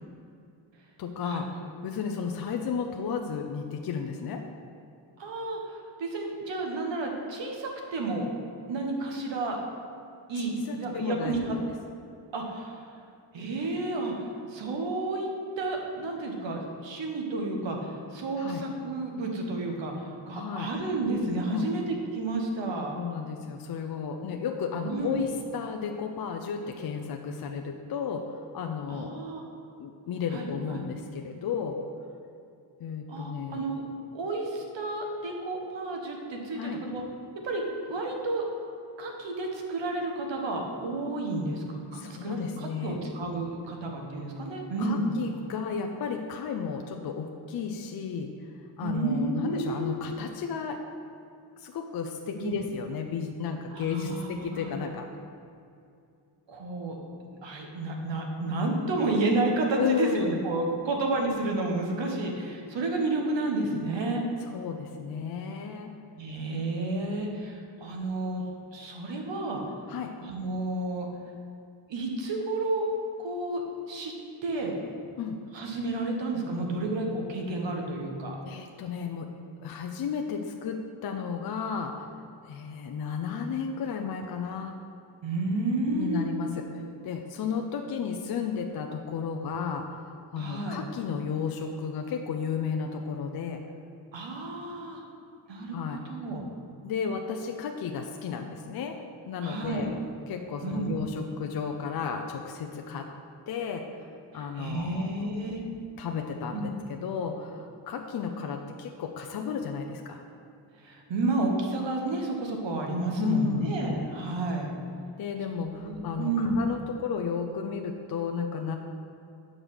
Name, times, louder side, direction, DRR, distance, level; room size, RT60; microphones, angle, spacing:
voice 1, 1.0-1.5 1.8-4.4 10.3-11.5 18.4-18.6 20.3-20.7 21.5-21.7 22.9-29.2 29.8-31.8 32.8-33.6 36.6-36.8 41.9-43.0 44.8-48.3 48.8-50.8 51.6-55.1 59.8-60.4 64.4-65.9 69.9-70.1 75.2-75.3 78.4-79.3 79.6-82.1 82.5-84.7 85.9-86.7 87.0-93.6 95.7-96.0 96.8-99.0 99.3-99.9 100.3-103.1 103.5-104.1 104.3-105.4 106.0-110.2 113.2-113.8 115.2-118.8, left 6 dB, 50° left, 4 dB, 0.5 m, -33 dB
voice 2, 5.2-8.3 8.7-9.6 10.3-11.6 12.3-12.8 13.3-15.3 15.6-21.8 22.1-22.9 24.8-25.2 28.9-29.4 30.3-30.8 33.1-33.8 34.1-37.0 37.4-37.6 37.9-38.4 39.0-45.1 48.8-49.9 52.4-52.6 53.7-54.7 56.5-57.0 57.4-64.2 66.2-68.4 68.7-69.6 70.2-71.1 71.9-72.9 73.2-74.1 74.4-74.7 75.5-78.4 85.2-86.3 90.4-90.8 94.1-95.0 95.5-95.8 96.1-96.4 99.4-99.9 100.6-101.0 104.3-105.6 106.5-106.7 110.8-114.7 115.5-116.6, right 2 dB, 65° right, 1 dB, 1.4 m, -31 dB
7.4 x 5.1 x 6.3 m, 2.5 s
wide cardioid pair, 175°, 47 cm